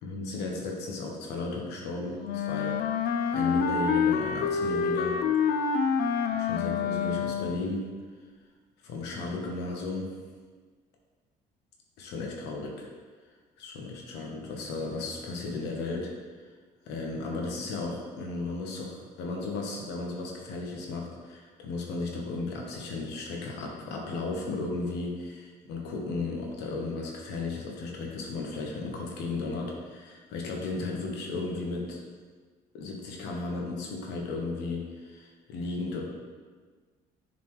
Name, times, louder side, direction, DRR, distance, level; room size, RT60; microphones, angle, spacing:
voice 1, 0.0-5.2 5.6-5.7 6.3-7.8 8.8-10.1 12.0-12.8 13.6-16.1 16.8-32.0 32.7-36.0, left 3 dB, 90° left, 0 dB, 1.1 m, -35 dB
Wind instrument woodwind instrument, 2.2-7.7, left 6 dB, 65° left, 0.5 m, -27 dB
7.3 x 4.2 x 3.1 m, 1.5 s
cardioid pair, 110°, 17 cm